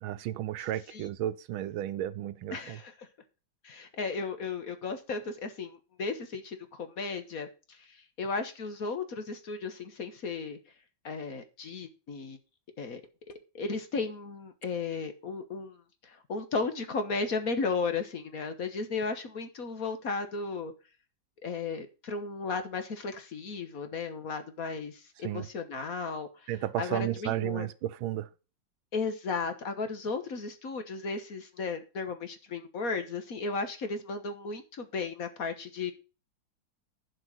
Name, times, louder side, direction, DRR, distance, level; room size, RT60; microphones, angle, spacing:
voice 1, 0.0-2.8 25.2-25.5 26.5-28.3, right 12 dB, 90° right, 1.5 m, -33 dB
voice 2, 2.5-3.1 3.6-10.6 11.0-12.4 12.8-13.0 13.3-20.7 21.4-26.5 26.8-27.7 28.9-35.9, left 4 dB, 50° left, 1.5 m, -35 dB
11.5 x 5.4 x 6.1 m
omnidirectional pair, 2.2 m